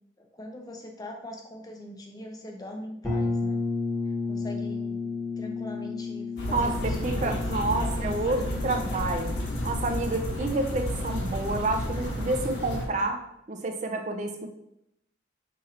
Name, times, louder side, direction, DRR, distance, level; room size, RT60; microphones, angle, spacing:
voice 1, 0.2-3.6 4.3-5.0 5.4-8.6, equal, 20° left, 2 dB, 0.4 m, -42 dB
sound 1, 3.0-12.7, left 4 dB, ahead, 1.0 m, -34 dB
sound 2, 6.4-12.8, equal, 60° left, 1.2 m, -31 dB
voice 2, 6.5-9.4 9.6-13.2 13.5-14.5, right 2 dB, 40° right, 5 dB, 0.4 m, -29 dB
3.1 x 2.7 x 3.8 m, 0.79 s
head